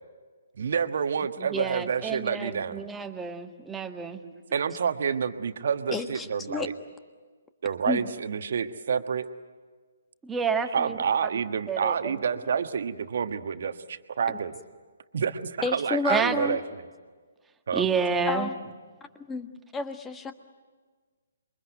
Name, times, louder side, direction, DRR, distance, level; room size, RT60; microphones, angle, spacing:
voice 1, 0.6-2.8 4.2-6.7 7.6-9.3 10.7-14.6 15.1-16.6 17.7-17.9, right 6 dB, 55° right, 9 dB, 1.4 m, -28 dB
voice 2, 1.5-4.2 10.2-11.0 11.7-12.2 16.1-16.3 17.7-18.5, right 5 dB, 10° right, 5 dB, 1.5 m, -29 dB
voice 3, 5.9-6.7 7.9-8.1 15.6-16.6 18.3-18.6 19.3-20.3, left 4 dB, 10° left, 8 dB, 1.4 m, -31 dB
27.5 x 23.5 x 9.2 m, 1.5 s
figure-of-eight pair, 135°, 0 cm